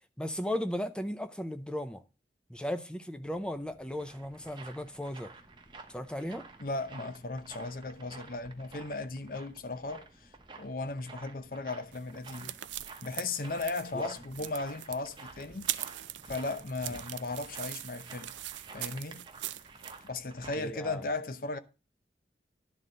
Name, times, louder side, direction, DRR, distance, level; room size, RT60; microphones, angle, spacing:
voice 1, 0.2-2.0 2.5-5.3 5.9-6.5 13.9-14.1 20.6-21.0, left 1 dB, 5° left, 0.6 m, -36 dB
sound 1, 3.1-20.9, equal, 35° left, 2.8 m, -63 dB
sound 2, 3.6-20.6, right 3 dB, 25° right, 0.9 m, -52 dB
voice 2, 6.6-12.6 13.0-15.9 16.3-18.3 18.7-19.3 20.0-21.6, left 3 dB, 50° left, 0.7 m, -36 dB
sound 3, 11.9-20.0, right 14 dB, 90° right, 0.4 m, -41 dB
11.0 x 4.0 x 7.5 m
head